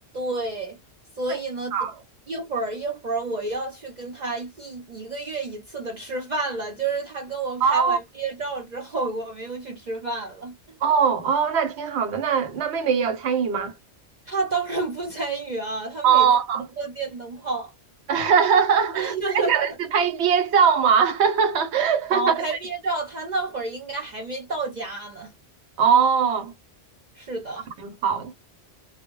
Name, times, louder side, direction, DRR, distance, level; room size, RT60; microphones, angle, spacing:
voice 1, 0.1-0.8 1.2-1.8 2.3-10.5 14.3-16.3 16.8-17.7 18.9-19.5 22.1-25.3 27.2-27.7, right 3 dB, 45° right, 0.7 m, -30 dB
voice 2, 7.6-8.0 10.8-13.7 16.0-16.6 18.1-19.2 19.4-22.4 25.8-26.5 27.8-28.3, right 7 dB, 75° right, 1.0 m, -21 dB
2.1 x 2.1 x 3.5 m
omnidirectional pair, 1.1 m